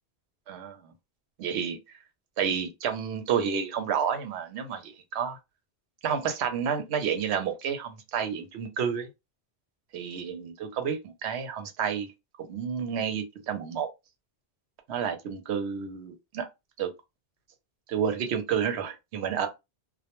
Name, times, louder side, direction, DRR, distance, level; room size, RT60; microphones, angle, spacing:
voice 1, 0.5-0.9 1.4-1.8 2.4-5.4 6.0-9.1 9.9-12.1 12.4-13.9 14.9-16.5 16.8-16.9 17.9-19.5, right 7 dB, 85° right, 0.9 m, -30 dB
2.2 x 2.1 x 2.9 m
omnidirectional pair, 1.1 m